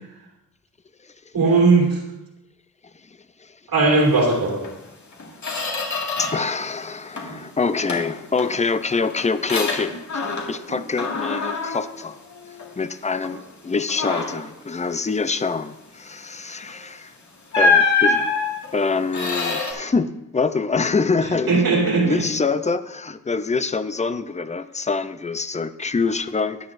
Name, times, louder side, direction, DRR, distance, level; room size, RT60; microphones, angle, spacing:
voice 1, 1.3-2.0 3.7-4.7 10.7-10.8 21.2-22.3, right 3 dB, 85° right, -1 dB, 2.9 m, -18 dB
Squeak, 4.6-4.8 5.1-6.6 6.9-7.5 7.9-10.7 11.0-12.8 13.2-13.5 13.9-14.5 16.6-16.8 17.5-19.7, left 4 dB, 55° left, 2.0 m, -25 dB
voice 2, 6.2-12.2 12.8-17.1 17.6-18.3 18.7-21.6 22.0-26.7, left 4 dB, 20° left, 12 dB, 0.5 m, -25 dB
13.5 x 10.0 x 2.6 m, 0.96 s
wide cardioid pair, 110°, 34 cm